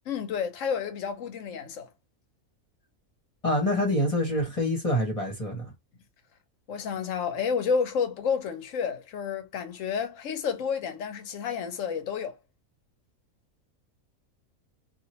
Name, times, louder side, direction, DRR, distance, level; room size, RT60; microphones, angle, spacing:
voice 1, 0.1-1.9 6.7-12.4, left 6 dB, 65° left, 1.0 m, -30 dB
voice 2, 3.4-5.7, left 1 dB, 25° left, 1.2 m, -26 dB
2.9 x 2.8 x 2.8 m
omnidirectional pair, 1.5 m